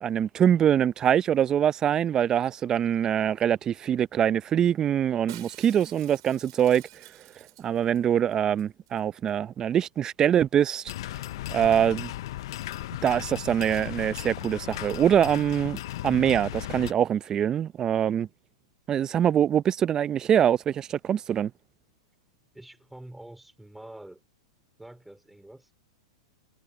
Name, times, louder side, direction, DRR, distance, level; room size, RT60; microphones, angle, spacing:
voice 1, 0.0-6.8 7.6-10.8 11.5-12.1 13.0-18.3 18.9-21.5, right 9 dB, 25° right, 0.5 m, -24 dB
Shatter, 5.3-8.0 8.3-8.4 8.6-9.0 9.3-9.4, right 19 dB, 60° right, 6.1 m, -49 dB
sound 1, 10.9-16.9, left 15 dB, 65° left, 0.5 m, -36 dB
voice 2, 22.5-24.2 24.8-25.7, right 1 dB, 5° right, 2.8 m, -46 dB
hypercardioid pair, 125°, 3 cm